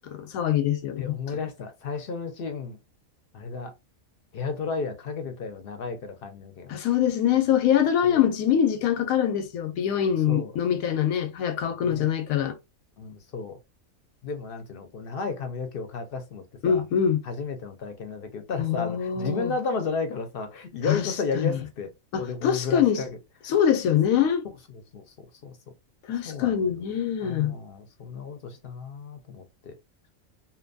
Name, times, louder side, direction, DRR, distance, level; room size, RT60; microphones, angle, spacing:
voice 1, 0.1-1.2 6.7-12.6 16.6-17.2 18.6-19.5 20.9-21.5 22.1-23.0 23.4-24.5 26.1-27.6, left 9 dB, 90° left, 1.0 m, -24 dB
voice 2, 1.0-2.8 3.3-3.7 4.3-6.8 8.0-8.3 10.3-10.5 11.8-12.1 13.0-13.6 14.2-16.8 17.2-21.9 22.2-23.2 23.4-23.5 24.4-25.6 26.2-26.6 27.2-29.7, left 4 dB, 55° left, 0.6 m, -33 dB
2.8 x 2.2 x 2.5 m
omnidirectional pair, 1.4 m